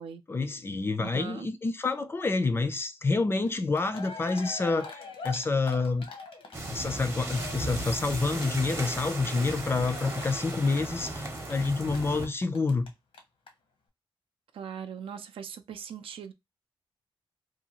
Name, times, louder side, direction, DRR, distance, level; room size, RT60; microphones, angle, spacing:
voice 1, 0.3-6.1 6.7-12.9, left 3 dB, 25° left, 0.4 m, -28 dB
voice 2, 1.0-1.5 14.5-16.3, right 8 dB, 80° right, 0.4 m, -40 dB
Cheering, 3.5-3.6 3.7-12.9 13.1-13.2 13.5-13.6, left 4 dB, 80° left, 0.9 m, -43 dB
sound 1, 6.5-12.3, right 1 dB, 30° right, 0.7 m, -35 dB
2.7 x 2.3 x 2.9 m
wide cardioid pair, 125°, 9 cm